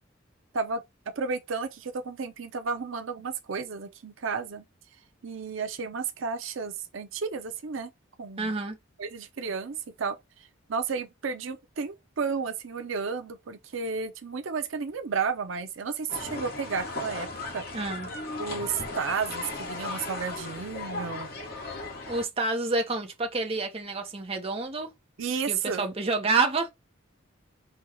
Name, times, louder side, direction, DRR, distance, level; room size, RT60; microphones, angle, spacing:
voice 1, 1.2-4.6 5.2-7.9 8.2-8.5 9.0-17.6 18.4-21.3 25.2-25.9, right 5 dB, 75° right, 0.6 m, -32 dB
voice 2, 8.4-8.8 17.7-18.1 22.1-24.9 25.5-26.7, right 3 dB, 30° right, 0.8 m, -28 dB
sound 1, 16.1-22.2, left 3 dB, 50° left, 1.3 m, -36 dB
4.5 x 2.3 x 4.8 m
head